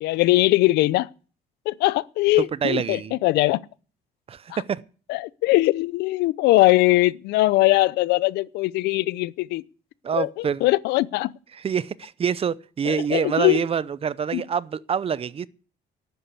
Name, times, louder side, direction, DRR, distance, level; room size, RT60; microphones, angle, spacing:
voice 1, 0.0-1.1 1.7-3.6 4.5-4.6 5.1-9.6 10.2-11.3 12.9-13.6 14.3-14.4, left 19 dB, 85° left, 0.6 m, -21 dB
voice 2, 2.4-3.2 4.3-4.8 10.0-10.6 11.6-15.5, right 7 dB, 35° right, 0.7 m, -26 dB
11.5 x 9.5 x 8.3 m
cardioid pair, 110°, 17 cm